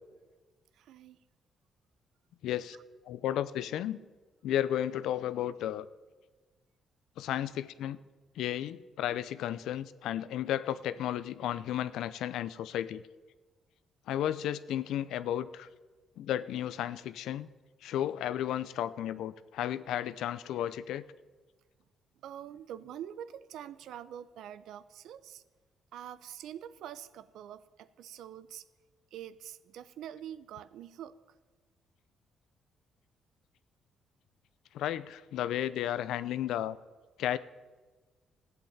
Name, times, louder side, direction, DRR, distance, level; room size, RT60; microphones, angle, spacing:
voice 1, 0.8-1.2 22.2-25.4 25.9-28.6 29.1-31.2, right 10 dB, 80° right, 15 dB, 0.7 m, -45 dB
voice 2, 2.4-2.8 3.1-4.0 4.4-5.9 7.2-8.0 8.4-13.0 14.1-15.7 16.2-17.5 17.8-21.0 34.7-36.8 37.2-37.4, left 11 dB, 85° left, 16 dB, 0.6 m, -33 dB
14.5 x 8.1 x 8.7 m, 1.3 s
cardioid pair, 90°, 0 cm